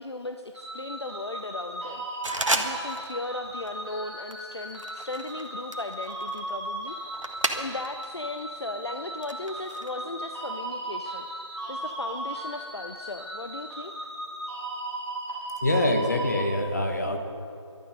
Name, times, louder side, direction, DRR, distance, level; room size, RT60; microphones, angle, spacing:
voice 1, 0.0-2.1 2.5-7.0 7.5-11.3 11.7-13.9, left 2 dB, 60° left, 7 dB, 0.7 m, -37 dB
sound 1, 0.5-16.4, right 1 dB, 5° left, 3.8 m, -37 dB
sound 2, 2.2-3.2 3.4-3.8 4.3-8.1 8.4-9.9, right 2 dB, 90° right, 1.6 m, -33 dB
voice 2, 15.6-17.2, left 1 dB, 35° left, 5 dB, 1.3 m, -25 dB
19.0 x 12.5 x 5.2 m, 2.5 s
figure-of-eight pair, 170°, 16 cm